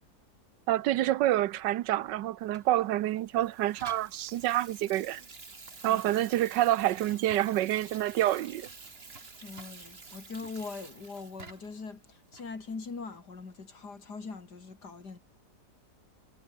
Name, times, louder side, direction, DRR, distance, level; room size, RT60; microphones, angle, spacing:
voice 1, 0.7-5.2 5.8-8.7, right 14 dB, 90° right, 1.4 m, -27 dB
Water tap faucet / Sink (filling or washing), 2.5-11.8 12.3-12.5, right 4 dB, 35° right, 2.3 m, -49 dB
voice 2, 9.4-15.2, left 4 dB, 65° left, 3.7 m, -42 dB
omnidirectional pair, 1.9 m